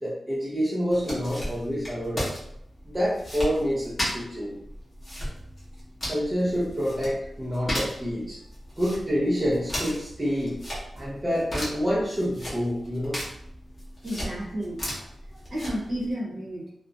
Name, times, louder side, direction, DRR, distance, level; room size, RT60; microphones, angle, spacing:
voice 1, 0.0-2.3 2.9-4.5 6.1-8.4 8.8-10.6 10.9-13.2, equal, 15° right, -8 dB, 0.5 m, -27 dB
sound 1, 0.9-16.1, equal, 20° left, 0.8 m, -36 dB
voice 2, 14.0-16.7, equal, 45° right, -5 dB, 0.9 m, -33 dB
2.5 x 2.1 x 2.5 m, 0.73 s
wide cardioid pair, 170°, 0 cm